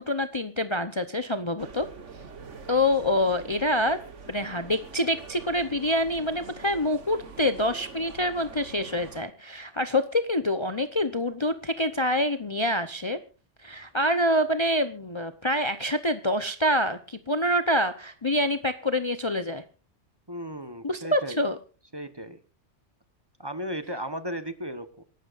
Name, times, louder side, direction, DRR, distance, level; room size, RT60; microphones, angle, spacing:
voice 1, 0.0-1.9 2.7-4.0 4.3-13.2 13.6-19.6 20.8-21.6, left 1 dB, 25° left, 9 dB, 0.8 m, -26 dB
sound 1, 1.6-9.3, right 5 dB, 85° right, 1.8 m, -45 dB
voice 2, 20.3-21.4 21.9-22.4 23.4-25.0, equal, 20° right, 10 dB, 1.1 m, -35 dB
27.5 x 12.0 x 2.6 m, 0.34 s
omnidirectional pair, 1.2 m